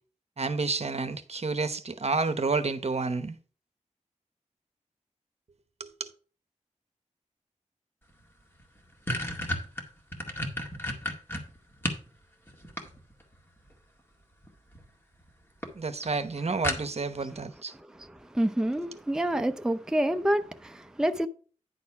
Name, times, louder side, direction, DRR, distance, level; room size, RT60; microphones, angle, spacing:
voice 1, 0.4-3.4 5.8-6.1 15.7-17.7, right 4 dB, 55° right, 0.9 m, -30 dB
sound 1, 8.2-8.3 8.6-12.1 12.5-13.3 14.4-14.8 15.2-15.3 15.6-15.7 16.0-16.1 16.6-17.2, left 1 dB, 15° left, 1.9 m, -32 dB
voice 2, 17.7-21.3, right 1 dB, 5° right, 0.5 m, -28 dB
10.0 x 4.2 x 5.8 m
wide cardioid pair, 80°, 13 cm